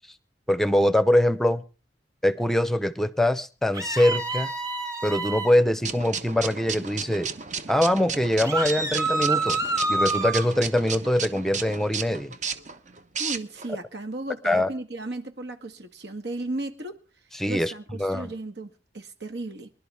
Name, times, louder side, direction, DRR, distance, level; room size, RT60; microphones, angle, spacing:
voice 1, 0.5-1.6 2.2-4.5 5.0-7.3 7.7-9.6 9.9-12.3 14.4-14.7 17.4-17.7 18.0-18.3, left 1 dB, ahead, 13 dB, 0.8 m, -23 dB
sound 1, 3.7-5.5 8.4-10.5, right 2 dB, 20° right, 4.0 m, -27 dB
sound 2, 5.8-13.7, right 6 dB, 45° right, 1.0 m, -34 dB
voice 2, 13.2-17.0 17.5-19.7, right 2 dB, 70° right, 7 dB, 1.8 m, -35 dB
24.5 x 11.5 x 3.5 m, 0.36 s
head